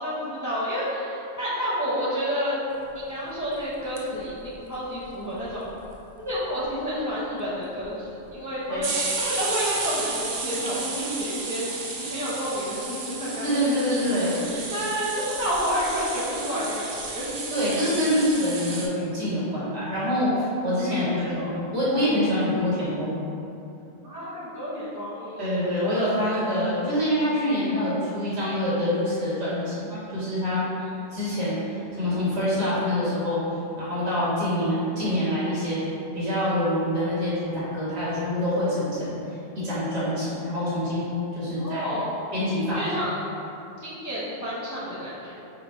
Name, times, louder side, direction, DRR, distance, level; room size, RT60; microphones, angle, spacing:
voice 1, 0.0-2.6 2.9-5.7 6.2-8.9 9.2-17.4 20.8-21.6 24.0-25.5 41.5-42.1 42.7-43.2 43.8-45.3, equal, 20° left, -9 dB, 0.5 m, -30 dB
sound 1, 3.7-4.5 4.8-4.9 5.0-5.1 5.3-5.9 6.3-6.4 6.6-6.9 7.8-7.9 8.8-18.9, right 3 dB, 55° right, 0.5 m, -32 dB
voice 2, 13.4-14.4 17.5-23.2 25.4-30.6 31.1-33.4 33.8-35.8 36.1-39.2 39.5-41.9 42.3-43.1, left 1 dB, 75° right, -10 dB, 1.7 m, -25 dB
4.3 x 2.0 x 4.3 m, 2.8 s
omnidirectional pair, 1.1 m